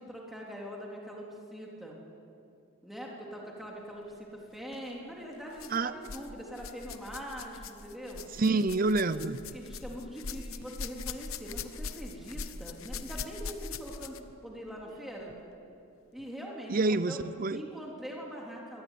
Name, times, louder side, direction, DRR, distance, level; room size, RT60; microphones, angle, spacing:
voice 1, 0.0-2.0 2.8-8.2 9.1-15.3 16.1-17.2 17.5-18.8, equal, ahead, -2 dB, 3.6 m, -43 dB
sound 1, 4.6-4.8 5.5-6.3 6.6-14.4 15.3-15.4 16.2-16.3, left 4 dB, 75° left, 1.0 m, -41 dB
voice 2, 8.4-9.4 16.7-17.6, right 3 dB, 40° right, 14 dB, 0.6 m, -27 dB
24.0 x 19.0 x 9.4 m, 2.6 s
head